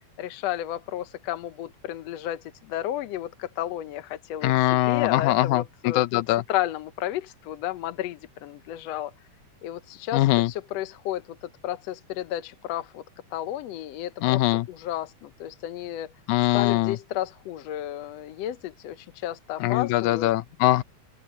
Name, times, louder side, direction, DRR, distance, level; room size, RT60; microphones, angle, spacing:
voice 1, 0.2-4.5 4.9-6.2 6.5-9.1 9.6-13.0 13.3-16.1 16.5-20.3, left 12 dB, 70° left, 1.8 m, -32 dB
voice 2, 4.4-6.4 10.1-10.5 14.2-14.7 16.3-17.0 19.6-20.8, left 16 dB, 85° left, 2.1 m, -22 dB
open air
omnidirectional pair, 3.3 m